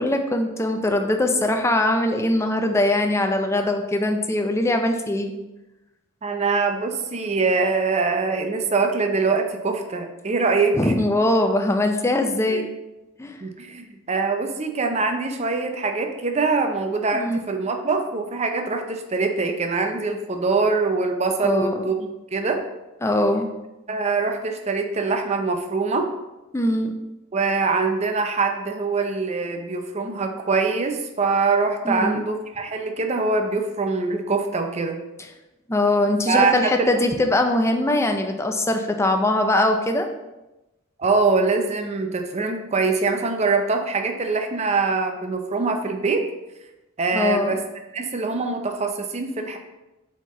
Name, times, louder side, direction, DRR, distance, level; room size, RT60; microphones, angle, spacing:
voice 1, 0.0-5.3 10.7-12.7 13.2-13.3 17.1-17.4 21.4-21.7 23.0-23.5 26.5-26.9 31.8-32.2 35.7-40.1 47.1-47.5, left 1 dB, 15° left, 5 dB, 0.5 m, -21 dB
voice 2, 6.2-10.9 12.5-12.6 13.4-22.6 23.9-26.1 27.3-35.0 36.3-36.9 41.0-46.3 47.0-47.6 47.9-49.6, right 4 dB, 30° right, 5 dB, 0.5 m, -23 dB
7.4 x 4.3 x 3.1 m, 1.0 s
head